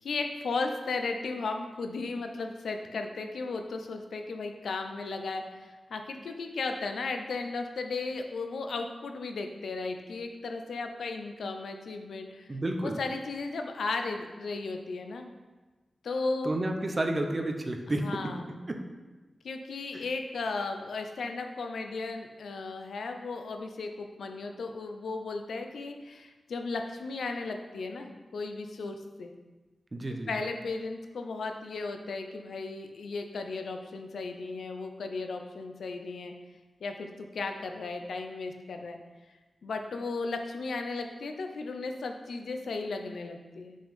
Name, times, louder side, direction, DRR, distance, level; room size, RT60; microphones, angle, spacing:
voice 1, 0.0-12.5 12.8-15.3 16.0-16.5 18.0-18.5 19.4-29.3 30.1-36.3 36.8-39.0 39.6-43.8, left 3 dB, 85° left, 5 dB, 0.7 m, -35 dB
voice 2, 12.5-13.0 16.4-18.2 18.5-18.8 29.9-30.3, right 1 dB, 30° right, 4 dB, 0.8 m, -31 dB
5.6 x 5.3 x 5.3 m, 1.2 s
wide cardioid pair, 90°, 0 cm